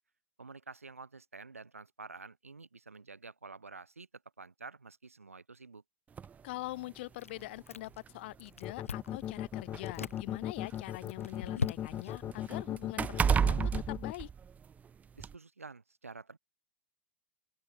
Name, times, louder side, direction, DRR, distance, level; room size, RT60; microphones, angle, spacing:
voice 1, 0.4-4.1 4.4-5.8 15.2-16.4, right 4 dB, 80° right, 6.1 m, -49 dB
sound 1, 6.2-6.3 7.4-7.5 7.9-8.1 9.0-11.0 11.4-14.8 15.2-15.3, right 7 dB, 20° right, 2.7 m, -32 dB
voice 2, 6.4-14.3, left 19 dB, 50° left, 4.3 m, -44 dB
Chewing mastication, 7.2-8.1 8.4-9.2 9.8-10.2 10.7-12.2, left 6 dB, 75° left, 3.0 m, -39 dB
sound 2, 8.6-14.1, left 11 dB, 30° left, 2.3 m, -37 dB
open air
figure-of-eight pair, 90°, 7 cm